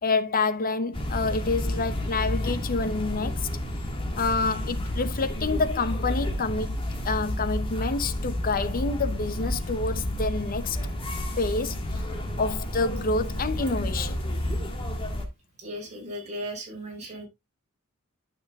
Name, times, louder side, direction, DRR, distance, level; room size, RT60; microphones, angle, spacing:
voice 1, 0.0-3.3 4.2-6.8 7.0-10.8 11.4-12.1 12.4-14.2, left 3 dB, 40° left, 0.8 m, -28 dB
sound 1, 0.9-15.3, left 1 dB, 25° left, 1.7 m, -30 dB
voice 2, 15.6-17.2, equal, 30° right, 5.2 m, -37 dB
12.5 x 6.3 x 2.3 m
head